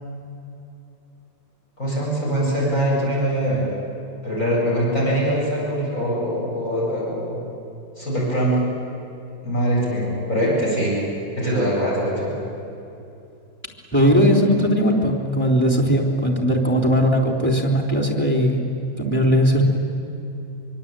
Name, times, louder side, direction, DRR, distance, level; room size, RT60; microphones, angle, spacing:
voice 1, 1.8-3.6 4.2-7.4 8.0-8.6 9.4-10.9 11.4-12.4, equal, 45° left, -5 dB, 8.6 m, -22 dB
voice 2, 13.9-18.6 19.0-19.6, equal, 5° left, 1 dB, 3.6 m, -18 dB
25.0 x 24.0 x 9.1 m, 2.8 s
omnidirectional pair, 1.9 m